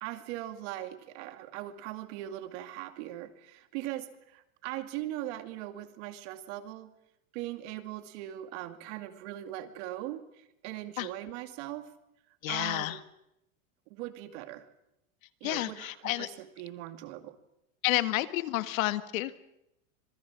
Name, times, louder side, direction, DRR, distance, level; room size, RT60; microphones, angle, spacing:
voice 1, 0.0-6.9 7.3-11.9 12.5-13.0 13.9-14.7 15.4-17.4, right 14 dB, 55° right, 9 dB, 2.5 m, -40 dB
voice 2, 12.4-13.0 15.4-16.3 17.8-19.4, left 16 dB, 75° left, 12 dB, 1.7 m, -30 dB
26.0 x 19.5 x 7.4 m, 0.84 s
supercardioid pair, 150°, 41 cm